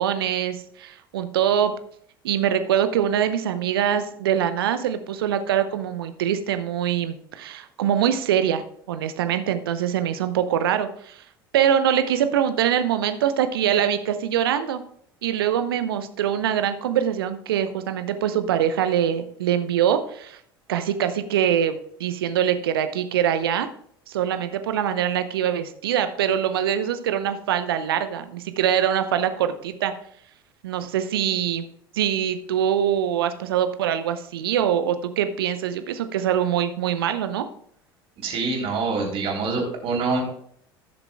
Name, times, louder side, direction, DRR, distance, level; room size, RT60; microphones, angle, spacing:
voice 1, 0.0-1.7 2.2-11.2 11.5-14.8 15.2-20.4 20.7-23.7 24.1-29.9 30.6-31.6 31.9-37.4, right 9 dB, 75° right, 10 dB, 0.8 m, -23 dB
voice 2, 38.2-40.3, right 3 dB, 50° right, -1 dB, 3.4 m, -25 dB
16.0 x 6.8 x 2.3 m, 0.64 s
figure-of-eight pair, 70°, 12 cm